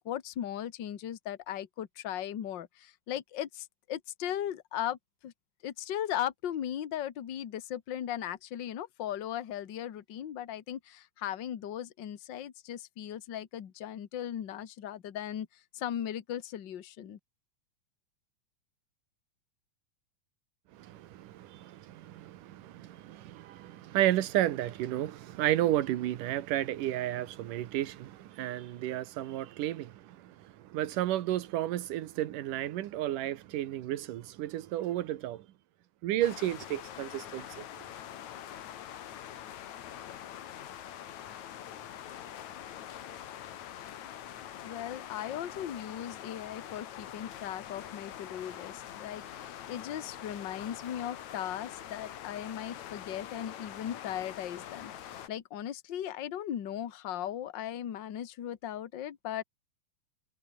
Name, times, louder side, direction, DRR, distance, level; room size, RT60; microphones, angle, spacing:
voice 1, 0.0-5.3 5.6-17.2 44.6-59.4, left 11 dB, 50° left, 1.5 m, -38 dB
voice 2, 20.7-35.5 36.0-37.7, right 13 dB, 80° right, 2.7 m, -32 dB
sound 1, 36.2-55.3, left 10 dB, 65° left, 2.7 m, -44 dB
omnidirectional pair, 3.7 m